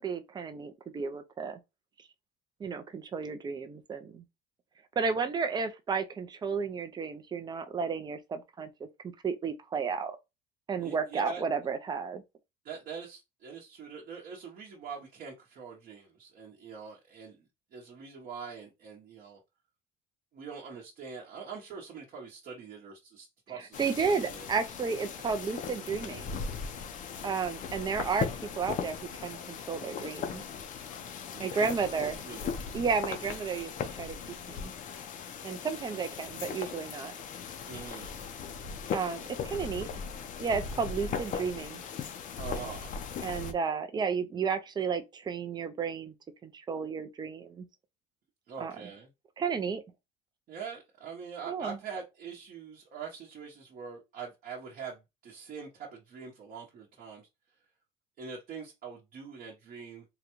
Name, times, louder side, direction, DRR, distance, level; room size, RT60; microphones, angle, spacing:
voice 1, 0.0-1.6 2.6-4.2 5.0-10.2 10.7-12.2 23.5-26.4 27.2-30.4 31.4-32.2 32.7-33.7 34.0-34.2 34.5-34.7 35.4-37.1 38.9-40.0 40.4-41.8 43.2-46.1 46.4-47.7 48.6-48.7 49.4-49.8 51.5-51.8, right 5 dB, 20° right, 0.5 m, -33 dB
voice 2, 10.8-11.4 12.6-19.4 20.3-24.5 31.3-32.8 35.9-36.0 37.6-38.3 42.4-43.0 48.5-49.1 50.5-57.3 58.2-60.0, right 6 dB, 45° right, 0.9 m, -44 dB
sound 1, 23.7-43.5, left 6 dB, 40° left, 0.6 m, -38 dB
3.8 x 2.2 x 2.9 m
cardioid pair, 135°, 20 cm